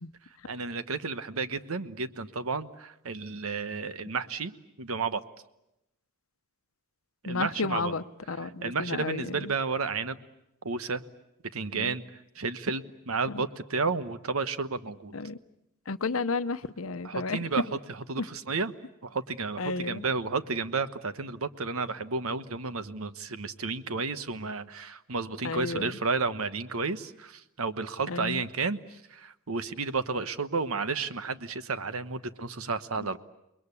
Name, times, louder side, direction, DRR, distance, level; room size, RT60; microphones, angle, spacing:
voice 1, 0.5-4.5 4.8-5.2 7.2-7.9 8.4-10.2 10.6-11.0 11.5-12.0 12.3-15.1 17.0-18.7 19.0-33.2, right 4 dB, 85° right, 1.1 m, -32 dB
voice 2, 7.2-9.3 11.7-11.9 13.3-13.4 15.1-15.4 15.9-17.5 18.2-18.3 19.6-20.0 25.4-25.9 28.1-28.5, left 3 dB, 75° left, 0.9 m, -32 dB
29.5 x 21.5 x 8.4 m
head